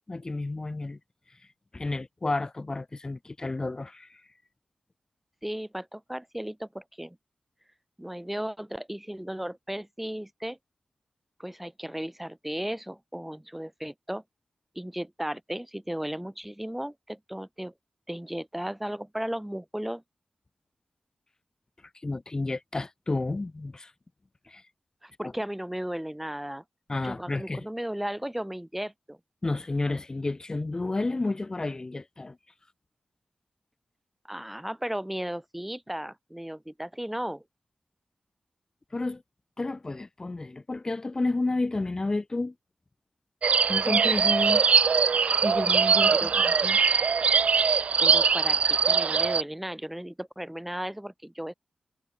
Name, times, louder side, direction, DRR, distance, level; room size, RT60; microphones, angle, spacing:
voice 1, 0.1-1.0 1.7-4.2 22.0-23.9 24.5-24.6 25.2-25.3 26.9-27.6 29.4-32.4 38.9-39.2 39.6-42.5 43.7-44.6 45.4-46.8, left 2 dB, 30° left, 0.6 m, -31 dB
voice 2, 5.4-7.2 8.0-10.6 11.4-14.2 14.8-17.7 18.1-20.0 25.0-26.6 27.0-29.2 34.3-37.4 46.1-46.3 48.0-51.5, equal, 5° right, 1.8 m, -35 dB
sound 1, 43.4-49.4, right 5 dB, 65° right, 0.3 m, -22 dB
wide cardioid pair, 95°, 2 cm